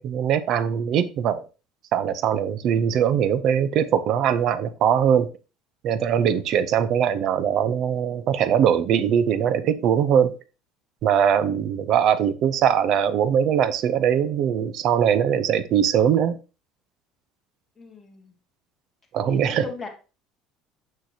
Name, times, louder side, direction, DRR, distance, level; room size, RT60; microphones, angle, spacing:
voice 1, 0.0-1.5 1.9-5.3 5.8-10.3 11.0-16.4 19.1-19.6, right 8 dB, 50° right, 0.6 m, -21 dB
voice 2, 17.8-18.3 19.3-19.9, left 4 dB, 10° left, 1.6 m, -37 dB
6.5 x 6.3 x 2.8 m
cardioid pair, 130°, 0 cm